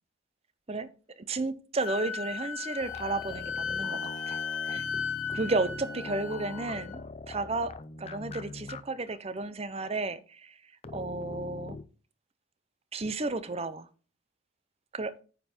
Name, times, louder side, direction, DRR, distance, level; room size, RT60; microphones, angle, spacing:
voice 1, 1.2-4.4 4.7-4.8 5.3-10.5 10.9-11.8 12.9-13.9 14.9-15.1, right 3 dB, 30° right, 0.6 m, -33 dB
Wind instrument woodwind instrument, 1.8-7.0, left 6 dB, 80° left, 1.6 m, -36 dB
sound 1, 2.8-8.8 9.1-9.2 10.8-11.8, left 3 dB, 30° left, 0.5 m, -42 dB
9.1 x 5.5 x 4.3 m
head